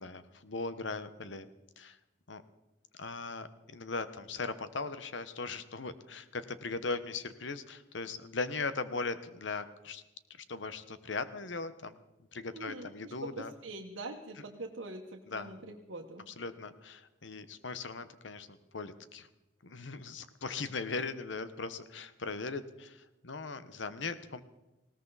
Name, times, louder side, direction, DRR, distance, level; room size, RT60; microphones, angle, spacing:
voice 1, 0.0-1.5 1.8-2.0 2.3-2.4 3.0-10.0 10.5-11.9 12.3-13.5 15.3-15.6 16.3-19.3 19.6-24.4, left 4 dB, 70° left, 12 dB, 1.0 m, -39 dB
voice 2, 12.5-16.2, right 2 dB, 80° right, 0 dB, 1.3 m, -44 dB
20.0 x 17.5 x 4.1 m, 1.0 s
head